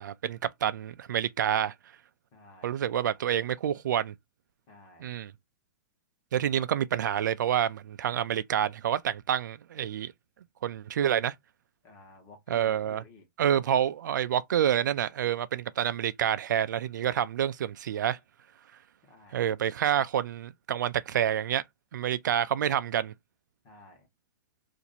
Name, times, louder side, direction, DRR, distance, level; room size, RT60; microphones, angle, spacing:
voice 1, 0.0-1.7 2.6-4.1 5.0-5.3 6.3-10.1 10.6-11.3 12.5-13.0 13.4-18.2 19.3-21.6 21.9-23.1, right 10 dB, 75° right, 0.4 m, -28 dB
voice 2, 2.3-2.8 4.7-5.1 11.8-13.3 19.0-19.6 23.6-24.1, left 2 dB, 25° left, 1.1 m, -53 dB
2.9 x 2.5 x 4.0 m
hypercardioid pair, 175°, 10 cm